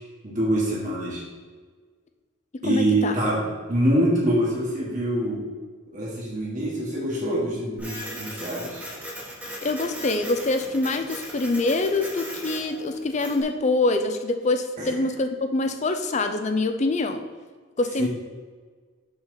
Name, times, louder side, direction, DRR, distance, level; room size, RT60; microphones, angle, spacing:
voice 1, 0.2-1.2 2.6-3.4 3.7-5.4 5.9-8.9 14.8-14.9 18.0-18.1, right 1 dB, 35° right, -5 dB, 1.5 m, -25 dB
voice 2, 2.6-3.2 9.6-17.2 17.8-18.1, left 2 dB, 35° left, 7 dB, 0.5 m, -25 dB
Printer, 7.8-13.4, equal, 5° right, 1.2 m, -38 dB
5.7 x 4.0 x 5.7 m, 1.5 s
head